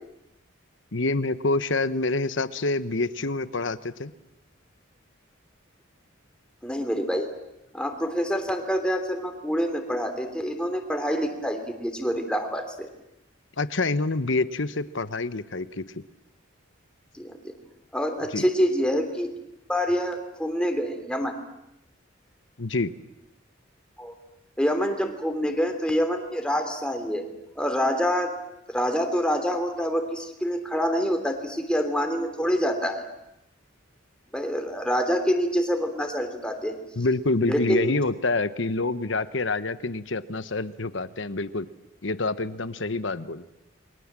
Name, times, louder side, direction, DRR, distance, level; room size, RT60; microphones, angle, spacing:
voice 1, 0.9-4.1 13.6-15.8 18.3-18.4 22.6-22.9 37.0-41.7 42.0-43.4, left 3 dB, 65° left, 13 dB, 1.1 m, -27 dB
voice 2, 6.6-7.3 7.7-12.9 17.1-17.5 17.9-19.3 19.7-21.3 24.0-24.1 24.6-27.2 27.5-28.3 28.7-33.0 34.3-36.7 37.5-37.9, equal, 5° left, 4 dB, 3.2 m, -26 dB
29.5 x 23.0 x 7.6 m, 0.88 s
head